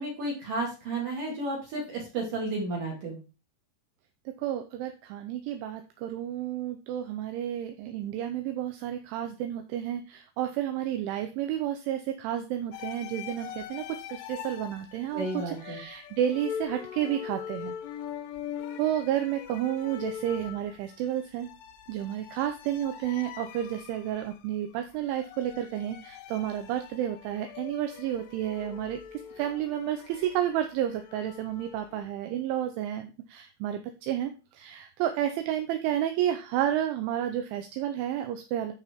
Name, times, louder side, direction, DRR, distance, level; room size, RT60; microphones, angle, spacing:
voice 1, 0.0-3.2 15.1-15.8, right 2 dB, 50° right, -1 dB, 3.0 m, -32 dB
voice 2, 4.3-17.7 18.8-21.5 21.9-38.7, right 11 dB, 80° right, 7 dB, 2.9 m, -31 dB
sound 1, 12.7-32.1, left 9 dB, 75° left, 2.6 m, -42 dB
13.5 x 4.7 x 3.6 m, 0.31 s
omnidirectional pair, 5.9 m